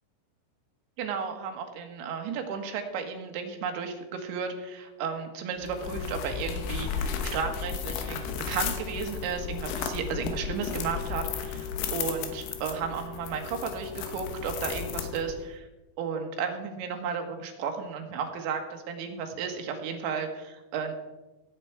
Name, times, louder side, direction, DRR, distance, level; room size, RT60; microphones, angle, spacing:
voice 1, 1.0-15.7 16.0-20.9, right 6 dB, 90° right, 4 dB, 3.8 m, -34 dB
sound 1, 5.6-15.5, left 7 dB, 75° left, 3.1 m, -34 dB
17.0 x 8.4 x 4.5 m, 1.1 s
omnidirectional pair, 5.1 m